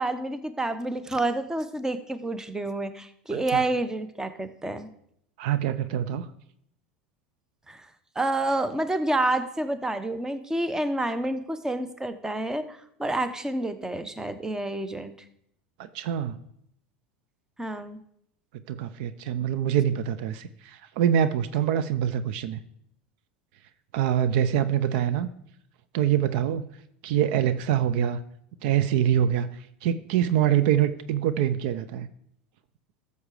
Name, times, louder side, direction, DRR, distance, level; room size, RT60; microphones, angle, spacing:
voice 1, 0.0-4.9 7.7-7.9 8.1-15.1 17.6-18.0, right 2 dB, 10° right, 11 dB, 0.9 m, -29 dB
voice 2, 3.3-3.6 5.4-6.3 15.8-16.4 18.7-22.6 23.9-25.3 25.9-26.6 27.0-28.2 28.6-32.1, right 10 dB, 65° right, 13 dB, 0.6 m, -25 dB
13.5 x 6.8 x 4.9 m, 0.72 s
hypercardioid pair, 85°, 6 cm